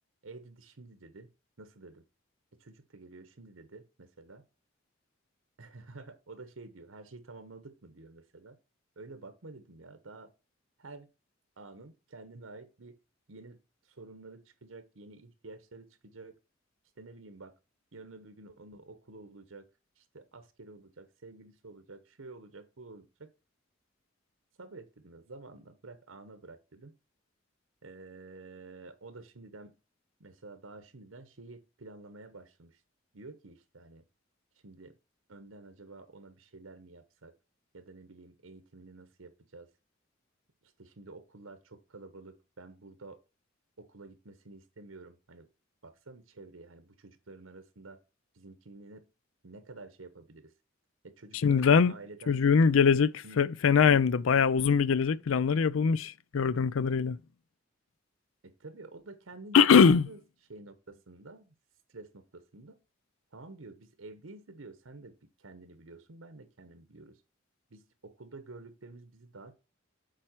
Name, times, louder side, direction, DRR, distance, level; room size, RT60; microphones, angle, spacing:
voice 1, 0.2-1.3 1.6-2.0 2.6-4.4 5.6-8.6 9.0-10.3 10.8-11.1 11.6-13.0 13.3-13.6 13.8-16.4 17.0-17.5 17.9-19.7 20.0-23.3 24.6-27.0 27.8-29.7 30.2-32.8 33.1-34.0 34.6-35.0 35.3-37.3 37.7-39.7 40.6-43.2 43.8-45.5 45.8-48.0 48.3-49.1 49.4-50.5 51.0-52.4 53.2-53.4 58.4-60.2 60.5-61.5 61.9-62.7 63.3-67.2 67.7-69.5, right 3 dB, 90° right, 1.0 m, -50 dB
voice 2, 51.4-51.9 52.3-57.2 59.5-60.1, left 6 dB, 85° left, 0.4 m, -22 dB
7.6 x 4.6 x 4.5 m
head